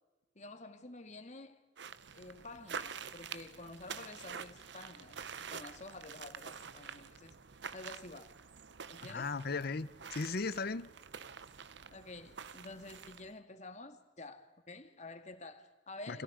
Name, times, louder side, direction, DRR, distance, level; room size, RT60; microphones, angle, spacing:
voice 1, 0.4-1.6 2.1-7.3 7.7-8.3 8.9-9.3 11.9-16.2, left 2 dB, 40° left, 2.1 m, -50 dB
sound 1, 1.8-13.3, right 6 dB, 65° right, 0.8 m, -48 dB
voice 2, 9.1-10.9 16.1-16.2, left 4 dB, 55° left, 0.8 m, -37 dB
30.0 x 28.0 x 5.0 m
head